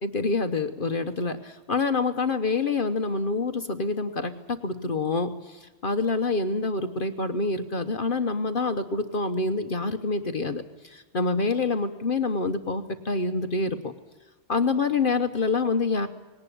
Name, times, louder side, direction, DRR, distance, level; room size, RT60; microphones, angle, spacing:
voice 1, 0.0-13.9 14.5-16.1, left 3 dB, 45° left, 8 dB, 1.1 m, -27 dB
19.5 x 18.0 x 10.0 m, 1.2 s
omnidirectional pair, 1.2 m